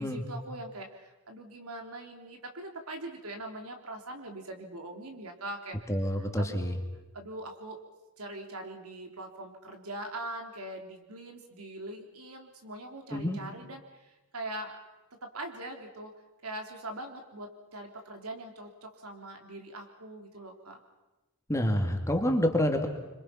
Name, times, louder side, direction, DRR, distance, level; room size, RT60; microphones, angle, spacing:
voice 1, 0.0-5.9 6.2-6.8 7.1-7.8 8.2-14.8 15.2-16.1 16.4-20.8, right 1 dB, 85° right, 4 dB, 3.5 m, -42 dB
voice 2, 5.9-6.8 13.1-13.4 21.5-22.9, equal, 15° left, 3 dB, 2.4 m, -27 dB
27.5 x 25.0 x 5.9 m, 1.1 s
head